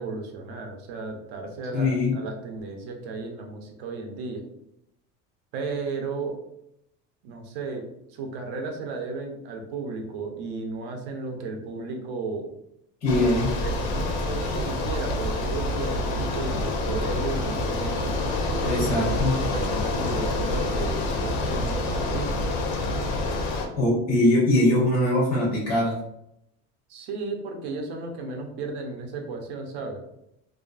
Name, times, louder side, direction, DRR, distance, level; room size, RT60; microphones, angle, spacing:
voice 1, 0.0-4.5 5.5-6.4 7.2-7.8 8.1-12.5 13.6-18.1 18.6-18.9 19.1-22.5 26.9-30.0, right 3 dB, 65° right, 3 dB, 0.6 m, -34 dB
voice 2, 1.7-2.1 13.0-13.5 18.7-19.3 23.8-26.0, left 1 dB, 20° left, -5 dB, 0.5 m, -22 dB
Bicycle, 13.1-23.7, left 2 dB, 75° left, 0.6 m, -27 dB
2.5 x 2.3 x 2.4 m, 0.79 s
cardioid pair, 175°, 32 cm